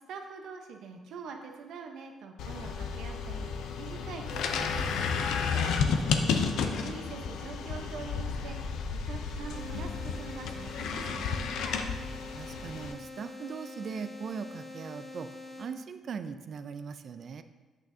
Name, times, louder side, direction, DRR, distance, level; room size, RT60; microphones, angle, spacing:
voice 1, 0.1-11.4, right 5 dB, 75° right, 3 dB, 0.9 m, -45 dB
sound 1, 2.4-12.9, left 5 dB, 85° left, 0.5 m, -32 dB
voice 2, 6.2-6.7 12.3-17.4, right 6 dB, 55° right, 10 dB, 0.4 m, -40 dB
sound 2, 9.5-15.7, left 2 dB, 25° left, 1.6 m, -45 dB
8.3 x 6.4 x 2.7 m, 1.2 s
cardioid pair, 90°, 0 cm